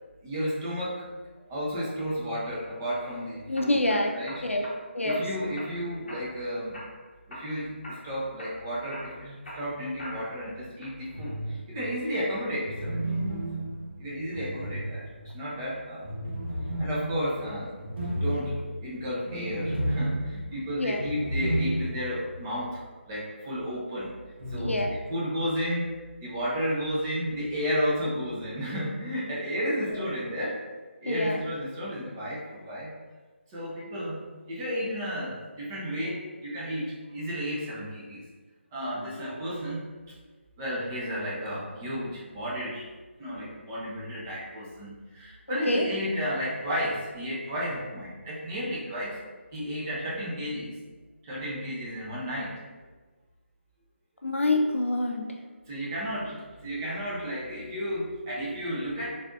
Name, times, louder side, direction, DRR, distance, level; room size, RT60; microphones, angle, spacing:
voice 1, 0.2-1.0 1.5-3.8 4.1-4.7 5.0-6.8 7.3-13.0 14.0-15.0 15.3-16.1 16.8-17.7 18.1-24.2 24.5-24.8 25.1-30.6 31.0-32.9 33.5-38.2 38.7-39.9 40.6-42.9 43.2-49.2 49.5-50.7 51.2-52.6 55.7-59.2, equal, 15° right, -7 dB, 0.5 m, -32 dB
sound 1, 2.7-3.0 3.6-4.8 5.1-5.7 6.1-6.4 6.7-7.5 7.8-8.1 8.4-10.4 10.8-11.3, equal, 50° left, 0.7 m, -43 dB
voice 2, 3.5-4.1 4.4-4.7 4.9-5.2 20.8-21.0 24.6-24.9 30.0-30.1 31.1-31.4 45.5-45.9 54.2-55.3, left 2 dB, 80° left, 2 dB, 0.5 m, -26 dB
sound 2, 11.1-11.8 12.6-15.4 16.0-22.3 22.5-22.6 24.4-24.8, right 1 dB, 55° right, 0.8 m, -32 dB
3.3 x 2.5 x 2.4 m, 1.3 s
figure-of-eight pair, 155°, 7 cm